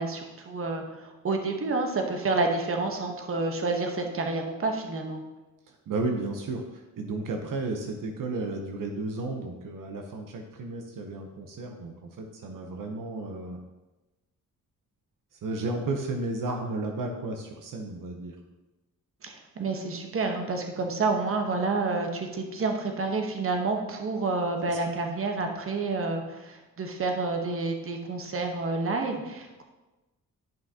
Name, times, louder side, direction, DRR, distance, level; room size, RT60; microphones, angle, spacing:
voice 1, 0.0-5.2 19.2-29.6, right 3 dB, 40° right, 3 dB, 1.1 m, -29 dB
voice 2, 5.7-13.6 15.3-18.4 24.6-24.7, right 2 dB, 75° right, 3 dB, 0.9 m, -33 dB
10.5 x 5.6 x 2.8 m, 1.1 s
cardioid pair, 105°, 33 cm